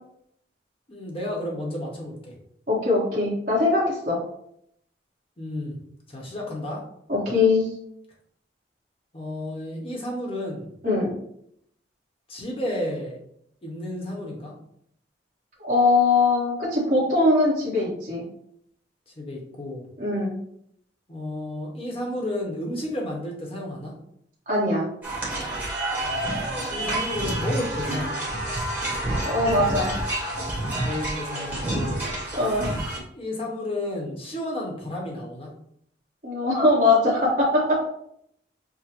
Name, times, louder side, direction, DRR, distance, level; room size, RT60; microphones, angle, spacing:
voice 1, 0.9-2.3 5.4-5.8 6.1-6.8 9.1-10.7 12.3-13.2 13.6-14.6 19.2-19.8 21.1-23.9 26.0-28.3 30.8-32.1 33.1-35.5, left 1 dB, 30° left, -1 dB, 0.9 m, -32 dB
voice 2, 2.7-4.2 7.1-7.7 10.8-11.1 15.6-18.2 20.0-20.3 24.5-24.9 29.2-30.1 32.0-32.7 36.2-37.9, left 2 dB, 50° right, -5 dB, 1.1 m, -22 dB
sound 1, 25.0-33.0, right 1 dB, 10° right, 1.0 m, -28 dB
6.0 x 2.0 x 2.9 m, 0.71 s
head